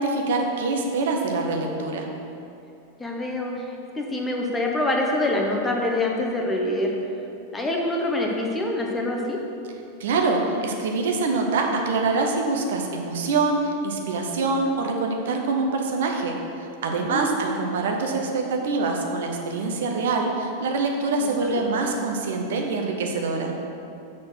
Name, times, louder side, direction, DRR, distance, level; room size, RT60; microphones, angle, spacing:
voice 1, 0.0-2.1 10.0-23.5, right 3 dB, 60° right, 2 dB, 0.8 m, -25 dB
voice 2, 3.0-3.7 3.9-6.9 7.5-9.4 17.1-17.3 21.2-21.6, left 1 dB, 10° left, 0 dB, 1.0 m, -25 dB
6.5 x 4.4 x 6.2 m, 2.7 s
figure-of-eight pair, 90°, 0 cm